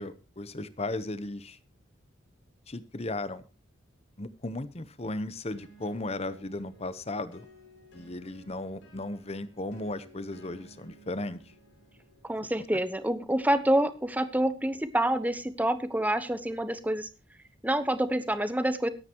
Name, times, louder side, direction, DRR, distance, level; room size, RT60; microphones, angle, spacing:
voice 1, 0.0-1.6 2.7-3.5 4.2-7.5 7.9-11.4, left 2 dB, 35° left, 14 dB, 0.9 m, -36 dB
sound 1, 5.5-15.1, right 1 dB, 85° left, 7.3 m, -57 dB
voice 2, 12.2-17.1 17.6-18.9, right 1 dB, 10° right, 12 dB, 1.0 m, -27 dB
23.5 x 9.7 x 3.0 m, 0.28 s
head